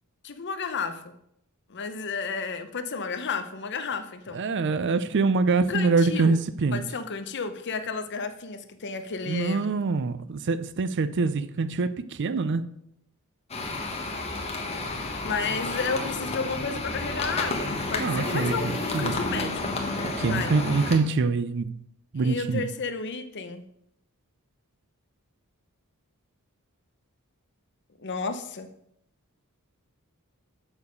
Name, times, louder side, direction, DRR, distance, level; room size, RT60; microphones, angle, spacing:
voice 1, 0.2-1.1 1.7-4.4 5.7-6.4 6.7-9.8 15.2-19.7 20.2-20.5 22.2-23.6 28.0-28.7, left 5 dB, 55° left, 0.8 m, -32 dB
voice 2, 4.3-6.8 9.2-12.7 18.0-19.2 20.0-21.8 22.1-22.7, right 4 dB, 55° right, 0.5 m, -25 dB
sound 1, 13.5-21.0, left 2 dB, 30° left, 1.2 m, -31 dB
7.1 x 6.8 x 5.2 m
head